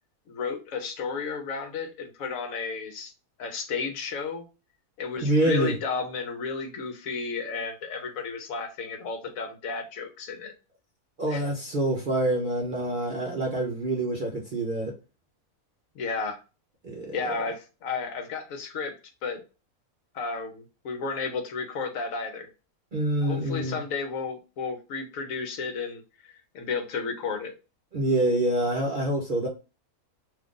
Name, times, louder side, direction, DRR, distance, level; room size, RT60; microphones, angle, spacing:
voice 1, 0.3-3.1 3.4-4.4 5.0-10.5 11.3-11.4 16.0-16.4 17.1-19.0 19.2-19.4 20.1-22.5 23.2-27.5, left 4 dB, 70° left, 6 dB, 1.1 m, -33 dB
voice 2, 5.2-5.7 11.2-14.9 16.8-17.2 22.9-23.8 27.9-29.5, right 1 dB, 50° right, -1 dB, 0.6 m, -26 dB
2.7 x 2.4 x 3.6 m, 0.30 s
omnidirectional pair, 1.6 m